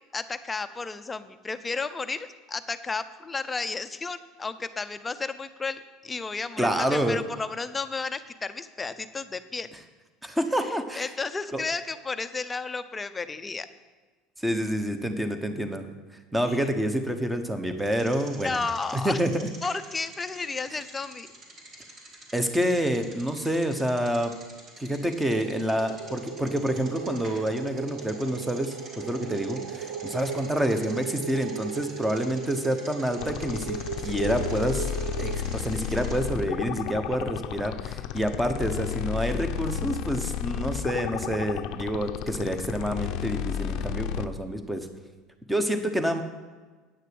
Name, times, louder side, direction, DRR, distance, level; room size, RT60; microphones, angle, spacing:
voice 1, 0.1-9.7 10.5-13.7 16.5-16.6 18.4-19.2 19.6-21.3, left 4 dB, 20° left, 11 dB, 0.6 m, -33 dB
voice 2, 6.6-7.2 10.2-11.1 11.5-11.6 14.4-15.9 16.3-18.6 19.0-19.3 22.3-24.3 24.8-33.8 34.0-34.9 35.2-44.9 45.5-46.2, equal, 5° right, 7 dB, 1.1 m, -28 dB
Bicycle, 17.8-36.2, right 2 dB, 40° right, 3.1 m, -47 dB
sound 1, 25.2-35.4, right 8 dB, 80° right, 0.5 m, -37 dB
sound 2, 33.2-44.3, left 9 dB, 60° left, 0.6 m, -32 dB
9.5 x 6.5 x 7.8 m, 1.3 s
supercardioid pair, 115°, 0 cm